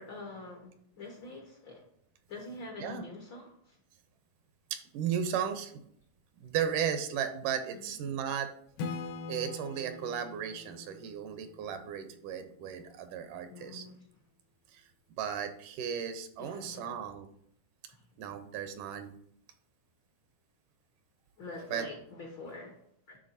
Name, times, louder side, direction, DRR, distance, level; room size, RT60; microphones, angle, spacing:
voice 1, 0.0-1.8 2.3-3.8 7.7-8.1 13.4-13.9 16.4-17.0 17.9-18.0 21.4-22.8 23.1-23.2, left 2 dB, 65° left, 1 dB, 1.2 m, -45 dB
voice 2, 4.7-5.8 6.4-8.5 9.3-13.9 14.7-14.8 15.2-17.3 18.2-19.1 21.7-21.9, right 8 dB, 80° right, 8 dB, 2.2 m, -35 dB
Acoustic guitar / Strum, 8.8-12.3, left 4 dB, 80° left, 2.1 m, -42 dB
10.5 x 3.7 x 2.6 m, 0.67 s
omnidirectional pair, 3.7 m